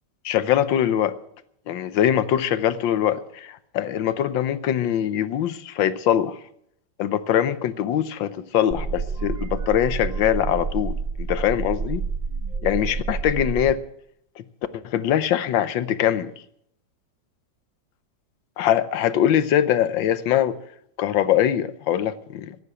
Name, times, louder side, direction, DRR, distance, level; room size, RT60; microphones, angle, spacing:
voice 1, 0.2-1.1 1.7-6.4 7.0-12.0 12.6-13.8 14.4-14.5 14.7-16.3 18.6-20.6 21.0-22.6, left 10 dB, 80° left, 14 dB, 1.5 m, -22 dB
sound 1, 8.7-13.7, right 4 dB, 30° right, 0.9 m, -29 dB
15.0 x 10.0 x 7.6 m, 0.71 s
omnidirectional pair, 2.0 m